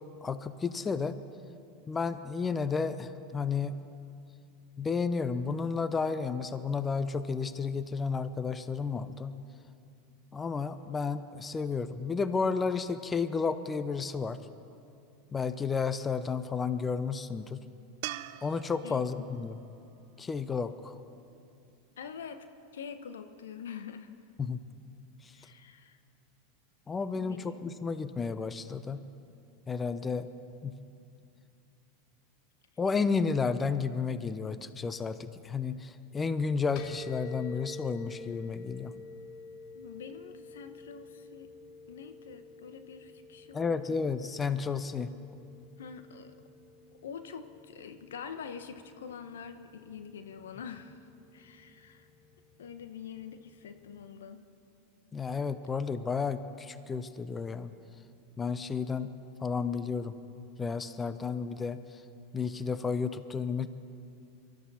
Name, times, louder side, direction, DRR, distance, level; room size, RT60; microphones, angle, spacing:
voice 1, 0.2-1.2 1.9-3.7 4.8-9.3 10.3-14.4 15.3-17.6 18.4-19.6 20.2-21.0 24.4-24.6 25.2-25.3 26.9-29.0 29.7-30.3 30.6-30.7 32.8-38.9 43.5-45.1 55.1-57.7 58.4-59.1 59.4-62.0 62.3-63.7, left 5 dB, 20° left, 12 dB, 0.7 m, -32 dB
sound 1, 18.0-21.3 24.5-24.6, right 15 dB, 65° right, 0.5 m, -45 dB
voice 2, 18.8-19.3 22.0-22.5 22.7-24.2 25.3-26.0 27.1-27.7 39.7-41.5 41.9-43.8 45.8-46.3 47.0-51.0 51.3-52.1 52.6-54.4, left 7 dB, 80° left, 9 dB, 1.0 m, -45 dB
sound 2, 36.8-54.1, left 3 dB, 55° left, 1.2 m, -50 dB
23.5 x 13.0 x 4.3 m, 2.6 s
hypercardioid pair, 95°, 0 cm